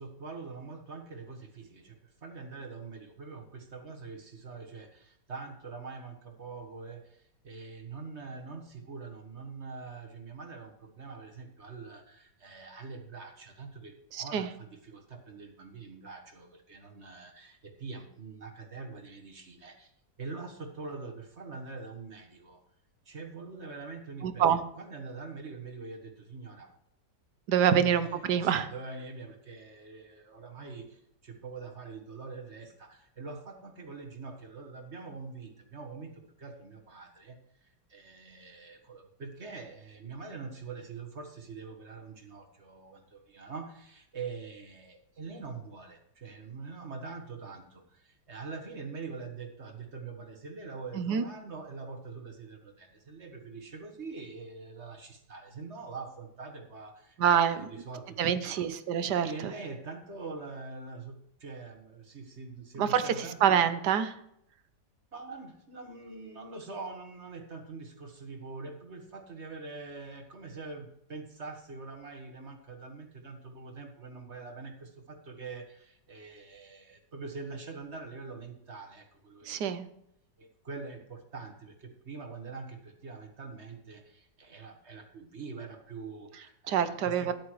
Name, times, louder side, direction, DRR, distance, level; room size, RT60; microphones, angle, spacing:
voice 1, 0.0-19.9 20.2-22.6 23.1-24.5 24.8-26.7 27.7-58.2 58.4-58.6 59.2-63.7 65.1-79.6 80.4-87.3, right 4 dB, 40° right, 2 dB, 1.7 m, -44 dB
voice 2, 14.1-14.5 24.2-24.6 27.5-28.7 50.9-51.2 57.2-57.7 58.2-59.5 62.8-64.2 79.4-79.8 86.7-87.3, right 8 dB, 70° right, 11 dB, 1.4 m, -26 dB
13.5 x 10.0 x 3.1 m, 0.75 s
omnidirectional pair, 1.9 m